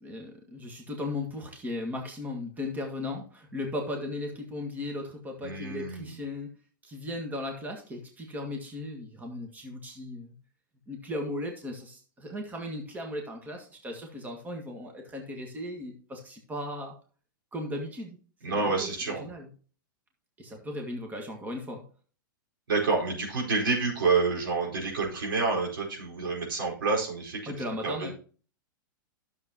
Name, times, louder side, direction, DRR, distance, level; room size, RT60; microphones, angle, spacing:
voice 1, 0.0-6.5 6.8-10.3 10.9-16.9 17.5-18.2 18.5-19.5 20.4-21.8 27.5-28.1, left 1 dB, 15° right, 2 dB, 1.8 m, -37 dB
voice 2, 5.4-6.1 18.4-19.2 22.7-27.5 27.8-28.1, right 4 dB, 80° right, -2 dB, 4.7 m, -28 dB
11.5 x 7.0 x 3.0 m, 0.40 s
hypercardioid pair, 115°, 11 cm